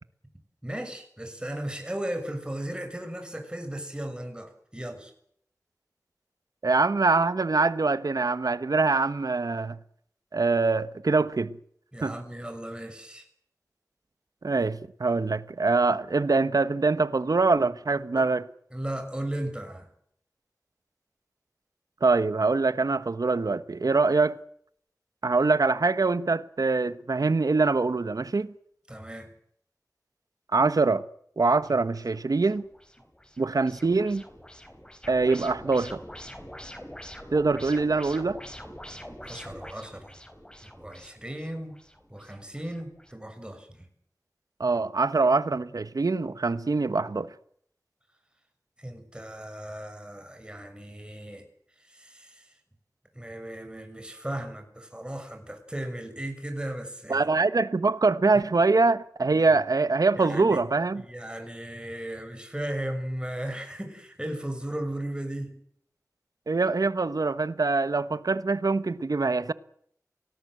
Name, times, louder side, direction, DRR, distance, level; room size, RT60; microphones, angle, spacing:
voice 1, 0.6-5.1 11.9-13.3 18.1-18.2 18.7-19.9 28.9-29.3 39.2-40.1 40.8-41.8 42.1-43.9 48.8-51.4 51.8-52.5 53.1-57.3 59.3-59.5 60.2-60.6 61.0-65.6, right 1 dB, 15° right, 6.5 m, -36 dB
voice 2, 6.6-9.8 10.3-11.6 12.0-12.2 14.4-18.4 22.0-24.4 25.2-28.5 30.5-31.0 31.4-32.7 33.4-34.2 35.1-36.0 37.3-38.4 44.6-47.3 57.1-61.0 66.5-69.5, right 3 dB, 80° right, 1.2 m, -24 dB
sound 1, 31.6-43.1, equal, 15° left, 3.9 m, -45 dB
25.0 x 19.0 x 7.9 m
wide cardioid pair, 55°, 6 cm